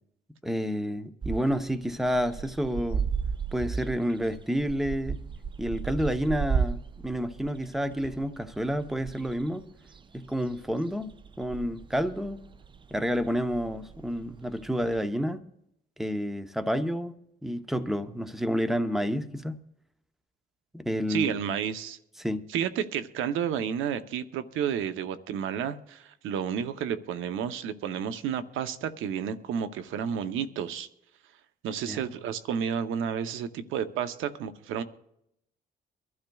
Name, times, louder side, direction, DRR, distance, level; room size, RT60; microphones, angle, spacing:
voice 1, 0.4-3.1 3.5-5.2 5.6-9.7 10.1-11.1 11.4-12.5 12.9-15.4 16.0-17.1 17.4-19.6 20.7-21.4 22.2-22.4 31.9-32.1, equal, ahead, 0.8 m, -29 dB
sound 1, 1.2-15.0, right 6 dB, 25° right, 0.4 m, -35 dB
voice 2, 21.1-22.0 22.5-30.9 31.6-34.8, right 8 dB, 90° right, 0.8 m, -31 dB
24.0 x 12.0 x 2.3 m
cardioid pair, 90°, 20 cm